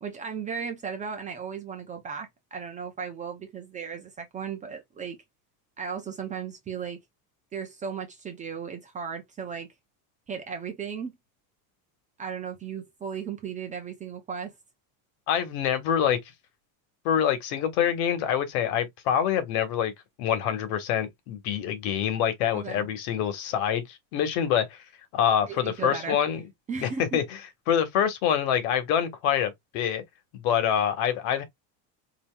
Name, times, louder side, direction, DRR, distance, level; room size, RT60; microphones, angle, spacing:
voice 1, 0.0-5.2 5.8-7.0 7.5-9.7 10.3-11.1 12.2-14.5 22.5-22.9 25.4-26.2 26.7-27.2, right 6 dB, 20° right, 0.4 m, -36 dB
voice 2, 15.3-16.2 17.0-19.9 20.2-24.8 25.1-26.4 26.8-27.2 27.7-30.0 30.3-31.4, left 9 dB, 75° left, 1.4 m, -26 dB
5.2 x 2.8 x 2.2 m
cardioid pair, 170°, 44 cm